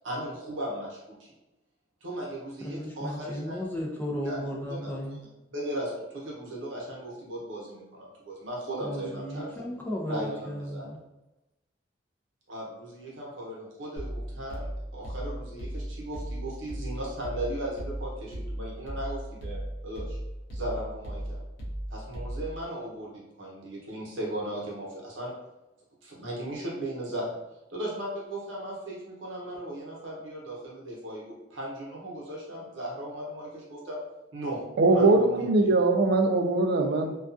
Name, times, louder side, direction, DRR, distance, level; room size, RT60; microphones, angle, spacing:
voice 1, 0.0-1.3 2.0-3.6 4.2-4.4 4.7-4.9 5.5-9.5 10.1-10.9 12.5-20.2 20.5-21.4 21.9-25.3 26.0-27.3 27.7-34.0 34.3-34.6 34.9-35.7, right 1 dB, 85° right, -4 dB, 0.8 m, -37 dB
voice 2, 2.6-5.2 8.8-11.0, equal, 10° left, -2 dB, 0.4 m, -34 dB
sound 1, 14.0-22.6, equal, 65° left, 0.7 m, -36 dB
voice 3, 34.8-37.2, right 2 dB, 55° right, 4 dB, 0.3 m, -21 dB
2.3 x 2.3 x 2.5 m, 0.96 s
head